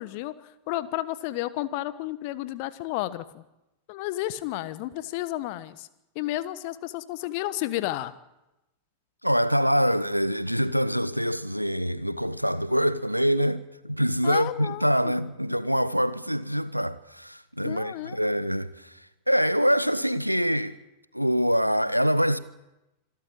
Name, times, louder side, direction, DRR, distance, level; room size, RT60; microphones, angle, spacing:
voice 1, 0.0-3.4 3.9-5.9 6.1-8.1 14.2-15.1 17.6-18.2, left 15 dB, 45° left, 1.2 m, -32 dB
voice 2, 9.2-19.0 19.3-20.8 21.1-22.4, equal, 90° right, 0.9 m, -25 dB
26.5 x 13.0 x 8.7 m
figure-of-eight pair, 90°, 0 cm